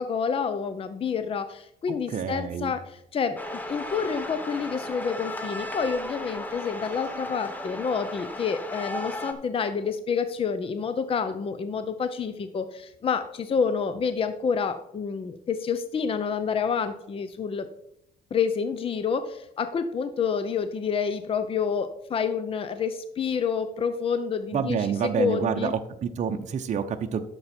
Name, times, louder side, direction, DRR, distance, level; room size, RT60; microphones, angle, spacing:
voice 1, 0.0-17.7 18.3-25.7, left 6 dB, 35° left, 10 dB, 0.7 m, -28 dB
voice 2, 1.9-2.7 24.5-27.2, right 7 dB, 45° right, 6 dB, 0.9 m, -28 dB
sound 1, 3.4-9.3, left 1 dB, 10° left, 1.3 m, -35 dB
11.0 x 7.0 x 4.4 m, 0.76 s
cardioid pair, 110°, 17 cm